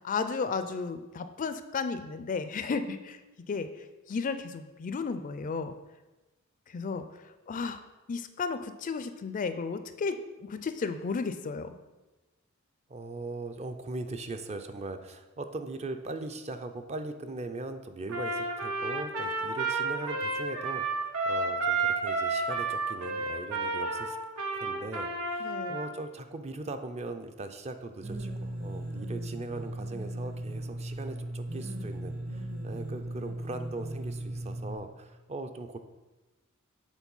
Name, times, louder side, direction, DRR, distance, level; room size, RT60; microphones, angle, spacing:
voice 1, 0.0-3.2 3.5-3.7 4.1-5.7 6.7-7.0 7.5-7.8 8.1-10.2 10.5-11.7 25.4-25.8, left 4 dB, 35° left, 10 dB, 0.4 m, -33 dB
voice 2, 12.9-24.2 24.5-35.8, right 2 dB, 30° right, 7 dB, 0.4 m, -40 dB
Trumpet, 18.1-25.9, right 3 dB, 90° right, 1.2 m, -31 dB
sound 1, 28.0-34.8, right 1 dB, 70° right, 2.2 m, -37 dB
7.2 x 3.9 x 5.4 m, 1.1 s
head